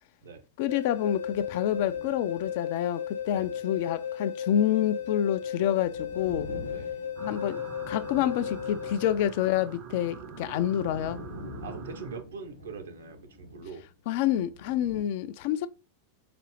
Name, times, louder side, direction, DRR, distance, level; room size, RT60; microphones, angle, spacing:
voice 1, 0.6-6.5 7.2-11.2 14.1-15.7, left 11 dB, 50° left, 0.4 m, -28 dB
sound 1, 0.7-9.6, left 8 dB, 65° left, 1.0 m, -35 dB
sound 2, 0.8-15.0, left 1 dB, 90° left, 0.9 m, -47 dB
sound 3, 7.2-12.2, right 6 dB, 35° right, 0.6 m, -44 dB
voice 2, 11.6-13.9, right 4 dB, 65° right, 0.8 m, -42 dB
5.0 x 2.6 x 3.0 m
figure-of-eight pair, 90°, 0 cm